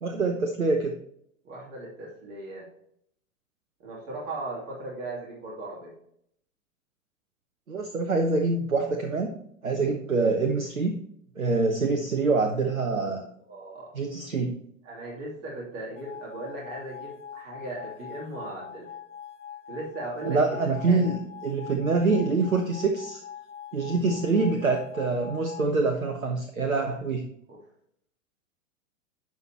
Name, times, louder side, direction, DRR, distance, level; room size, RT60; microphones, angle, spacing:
voice 1, 0.0-0.9 7.7-9.4 9.6-11.0 11.4-13.2 13.9-14.5 20.3-23.2 23.7-27.2, right 3 dB, 80° right, 5 dB, 1.0 m, -25 dB
voice 2, 1.4-2.7 3.8-5.9 13.1-13.2 13.5-13.9 14.8-18.9 19.7-21.1 26.8-26.9 27.5-27.6, right 2 dB, 35° right, -4 dB, 2.8 m, -38 dB
sound 1, 16.0-25.7, left 9 dB, 60° left, 0.8 m, -43 dB
10.5 x 5.8 x 2.9 m, 0.70 s
figure-of-eight pair, 100°, 40 cm